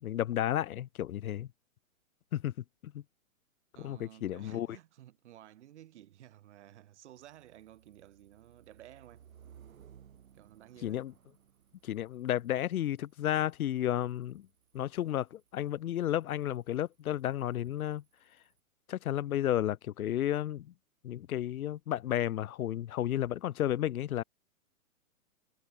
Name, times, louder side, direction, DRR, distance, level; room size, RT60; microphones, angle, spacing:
voice 1, 0.0-1.5 2.3-2.5 2.8-3.0 3.8-4.7 10.8-11.1 11.8-14.5 14.7-18.0 18.9-20.7 21.0-24.2, left 12 dB, 90° left, 0.7 m, -32 dB
voice 2, 3.7-9.3 10.3-11.1, right 12 dB, 55° right, 7.5 m, -54 dB
sound 1, 7.2-18.6, right 9 dB, 75° right, 3.3 m, -61 dB
hypercardioid pair, 150°, 42 cm